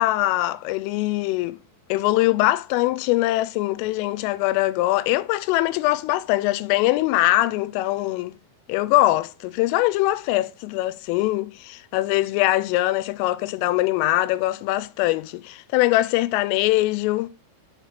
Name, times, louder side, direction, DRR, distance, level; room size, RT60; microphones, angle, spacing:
voice 1, 0.0-1.6 1.9-8.3 8.7-17.3, left 17 dB, 85° left, 3.1 m, -22 dB
6.7 x 6.4 x 4.9 m
omnidirectional pair, 5.7 m